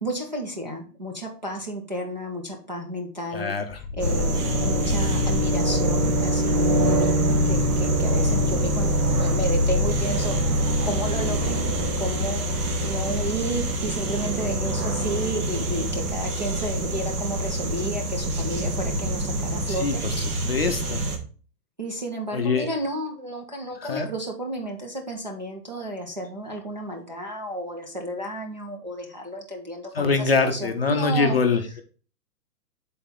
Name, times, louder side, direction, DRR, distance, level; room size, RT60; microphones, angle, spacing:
voice 1, 0.0-3.5 4.0-11.6 12.0-20.0 21.8-31.4, equal, 30° right, -1 dB, 0.4 m, -32 dB
voice 2, 3.3-3.8 19.7-21.0 22.3-22.7 23.8-24.1 29.9-31.8, left 4 dB, 40° left, 6 dB, 0.5 m, -24 dB
sound 1, 3.7-11.5, left 4 dB, 75° left, 0.7 m, -27 dB
sound 2, 4.0-21.2, right 2 dB, 65° right, 1.5 m, -25 dB
7.5 x 4.0 x 3.6 m, 0.39 s
hypercardioid pair, 175°, 49 cm